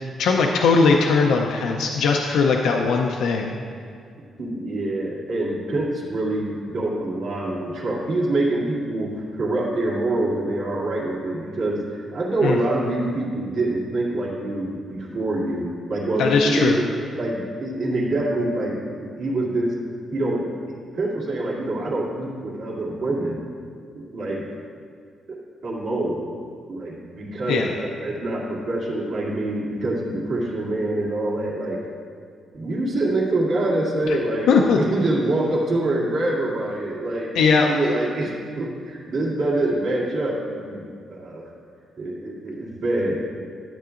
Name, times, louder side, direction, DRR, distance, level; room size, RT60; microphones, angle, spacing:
voice 1, 0.2-3.5 12.4-12.6 16.2-16.8 27.5-27.7 34.5-34.8 37.4-37.7, left 4 dB, 90° left, 1 dB, 0.5 m, -19 dB
voice 2, 4.4-19.7 20.1-23.4 23.9-24.5 25.3-25.4 25.6-26.2 26.7-31.8 32.5-34.5 34.8-37.3 37.7-41.5 42.0-43.4, right 2 dB, 65° right, -5 dB, 2.1 m, -25 dB
12.0 x 8.2 x 2.5 m, 2.2 s
cardioid pair, 120°, 0 cm